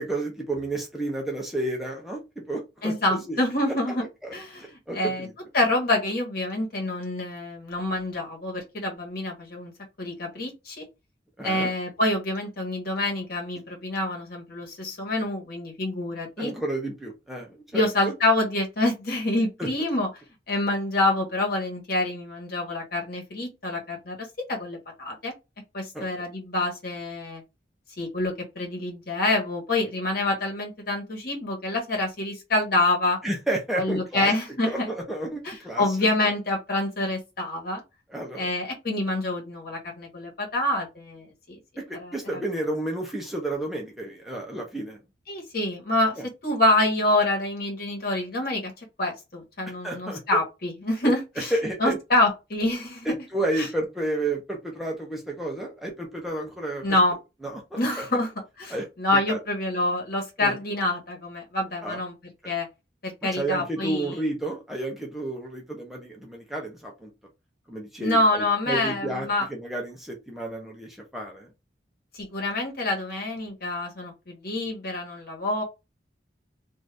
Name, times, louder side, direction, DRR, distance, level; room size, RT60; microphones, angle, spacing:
voice 1, 0.0-3.4 4.2-4.3 4.6-5.3 11.4-11.7 16.4-18.1 19.6-19.7 25.9-26.0 33.2-34.3 34.6-36.0 38.1-38.5 41.9-45.0 49.8-50.2 51.5-52.0 53.1-56.8 57.4-57.6 58.0-58.1 58.7-58.9 59.3-59.4 60.4-60.6 61.8-62.0 62.4-62.5 63.3-67.1 67.7-71.5, right 2 dB, ahead, 0.6 m, -31 dB
voice 2, 2.8-4.0 4.3-5.3 5.5-9.7 10.0-10.8 11.4-16.5 17.7-20.1 20.5-25.3 25.7-27.4 28.0-33.2 33.8-34.9 35.4-37.8 38.4-41.6 41.9-42.4 45.3-48.7 49.0-51.5 51.8-53.1 53.6-53.7 56.8-57.1 57.8-58.3 58.6-62.1 62.4-62.7 63.0-64.2 68.0-69.5 72.1-75.6, left 2 dB, 55° left, 1.3 m, -26 dB
2.6 x 2.5 x 3.3 m
head